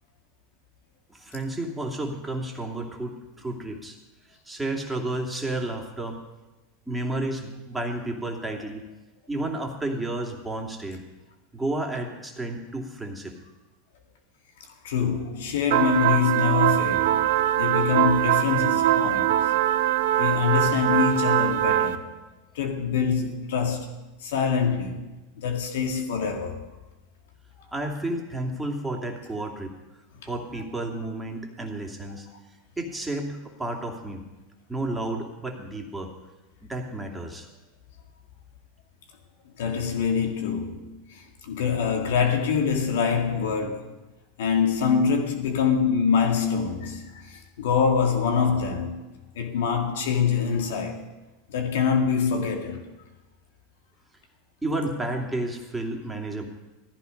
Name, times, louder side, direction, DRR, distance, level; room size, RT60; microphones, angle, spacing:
voice 1, 1.1-4.0 4.5-6.2 6.9-8.8 9.3-11.0 11.5-13.4 27.7-29.7 30.2-32.3 32.8-34.2 34.7-36.1 36.6-37.5 54.6-56.4, right 2 dB, 10° right, 2.9 m, -31 dB
voice 2, 14.8-19.6 20.1-22.1 22.5-23.9 24.2-25.1 25.4-26.7 39.6-43.9 44.4-49.0 49.3-51.1 51.5-52.8, left 6 dB, 75° left, 2.2 m, -25 dB
sound 1, 15.7-22.0, right 13 dB, 70° right, 0.9 m, -22 dB
17.0 x 14.0 x 5.4 m
hypercardioid pair, 100°, 0 cm